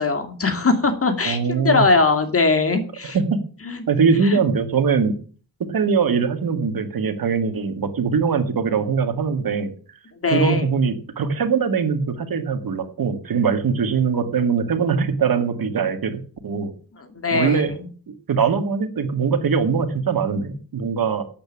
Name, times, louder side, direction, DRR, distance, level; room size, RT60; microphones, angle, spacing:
voice 1, 0.0-1.4 1.6-3.2 3.6-3.9 4.2-4.4 10.2-10.8 16.9-17.9, left 3 dB, 35° left, 5 dB, 2.3 m, -21 dB
voice 2, 1.2-1.8 3.1-3.4 3.9-5.2 5.7-9.7 10.3-16.7 17.3-17.7 18.1-21.2, right 5 dB, 60° right, 8 dB, 1.8 m, -22 dB
9.1 x 7.8 x 8.7 m, 0.41 s
wide cardioid pair, 125°, 40 cm